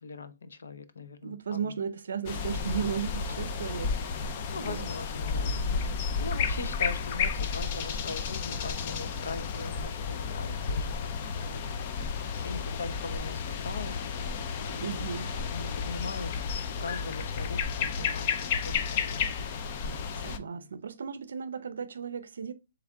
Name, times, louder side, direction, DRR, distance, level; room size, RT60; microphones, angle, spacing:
voice 1, 0.0-1.7 4.5-5.7 6.2-10.9 11.3-11.8 12.4-14.0 14.7-15.1 15.5-16.3 16.8-19.4 20.4-20.7, left 3 dB, 85° left, 0.6 m, -41 dB
voice 2, 1.2-4.9 5.5-5.9 14.8-15.3 20.1-22.5, right 7 dB, 75° right, 0.5 m, -36 dB
sound 1, 2.3-20.4, left 5 dB, 30° left, 0.4 m, -32 dB
3.6 x 3.3 x 3.4 m
hypercardioid pair, 170°, 0 cm